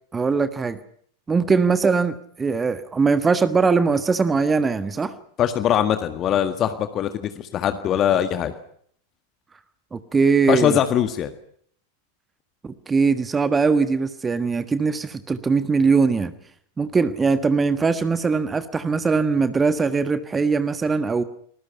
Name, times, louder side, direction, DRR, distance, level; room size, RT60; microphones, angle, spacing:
voice 1, 0.1-0.8 1.3-5.1 9.9-10.8 12.6-16.3 16.8-21.2, right 4 dB, 15° right, 12 dB, 1.4 m, -21 dB
voice 2, 5.4-8.5 10.5-11.3, left 10 dB, 30° left, 9 dB, 1.8 m, -22 dB
30.0 x 21.0 x 5.8 m, 0.63 s
figure-of-eight pair, 90°, 0 cm